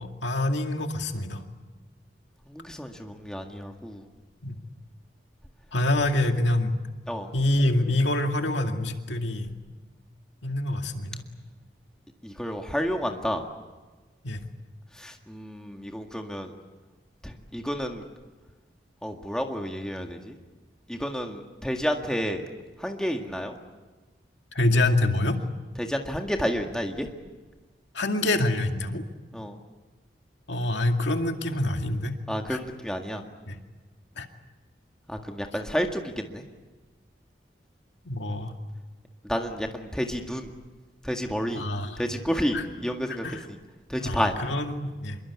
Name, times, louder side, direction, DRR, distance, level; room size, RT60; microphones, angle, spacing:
voice 1, 0.0-1.4 4.4-4.6 5.7-6.8 7.3-9.5 10.4-11.2 14.2-14.4 24.5-25.4 27.9-29.0 30.5-32.2 32.5-32.6 33.5-33.6 34.2-34.3 38.1-38.5 41.5-42.0 42.5-42.7 43.1-43.5 44.0-45.2, left 1 dB, 85° left, 5 dB, 2.2 m, -26 dB
voice 2, 2.5-4.0 7.1-7.3 12.2-13.4 15.0-16.5 17.2-18.0 19.0-20.3 20.9-22.4 22.8-23.5 25.8-27.1 29.3-29.6 32.3-33.2 35.1-36.4 39.2-40.5 41.0-41.6 42.0-43.2 43.9-44.3, equal, 5° left, 3 dB, 1.9 m, -30 dB
26.0 x 23.0 x 8.5 m, 1.3 s
head